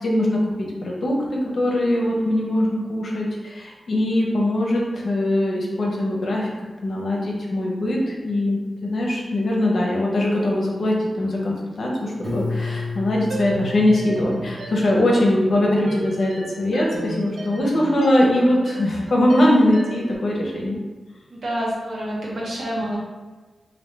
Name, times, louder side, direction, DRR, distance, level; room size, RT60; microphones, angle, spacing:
voice 1, 0.0-6.5 6.8-20.8, left 1 dB, 55° left, -2 dB, 0.7 m, -21 dB
Piano, 12.2-15.2, left 3 dB, ahead, 1.2 m, -31 dB
sound 1, 13.3-20.2, right 2 dB, 80° right, 0.5 m, -35 dB
voice 2, 21.3-23.0, equal, 60° right, -6 dB, 1.0 m, -27 dB
3.2 x 2.6 x 3.2 m, 1.2 s
wide cardioid pair, 175°, 0 cm